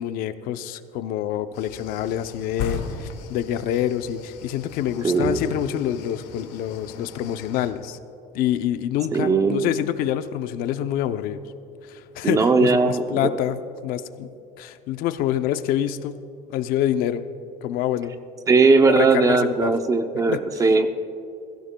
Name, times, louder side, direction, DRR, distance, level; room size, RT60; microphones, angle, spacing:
voice 1, 0.0-8.0 8.3-11.4 11.8-14.3 14.6-16.2 16.5-17.3 17.6-18.2 18.8-19.7 20.3-20.4, left 11 dB, 60° left, 11 dB, 0.5 m, -26 dB
sound 1, 1.5-7.7, left 6 dB, 85° left, 1.6 m, -36 dB
voice 2, 5.0-5.5 9.1-9.7 12.2-13.3 18.5-20.9, right 4 dB, 20° right, 8 dB, 0.5 m, -19 dB
21.5 x 15.5 x 2.2 m, 2.6 s
cardioid pair, 165°, 16 cm